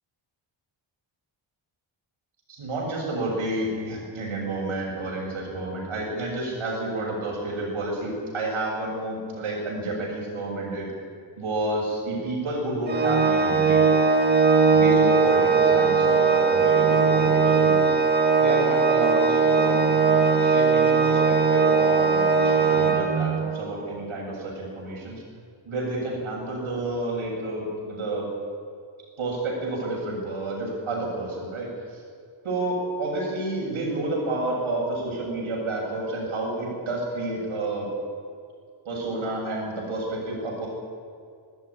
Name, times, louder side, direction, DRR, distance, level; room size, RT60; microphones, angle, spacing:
voice 1, 2.5-10.9 11.4-13.9 14.7-17.9 18.4-25.2 25.7-28.3 29.2-32.0 32.4-37.9 38.8-40.7, right 2 dB, 75° right, -2 dB, 7.5 m, -30 dB
Organ, 12.9-23.6, right 5 dB, 20° right, 1.6 m, -19 dB
20.0 x 13.0 x 9.9 m, 2.3 s
wide cardioid pair, 175°, 49 cm